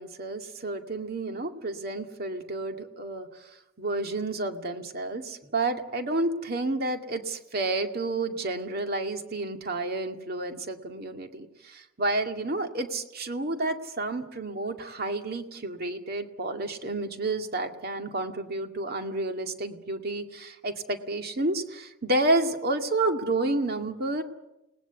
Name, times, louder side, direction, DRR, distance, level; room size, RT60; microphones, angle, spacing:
voice 1, 0.0-3.3 3.8-24.2, right 2 dB, 50° right, 5 dB, 2.2 m, -30 dB
29.5 x 19.5 x 8.2 m, 0.96 s
head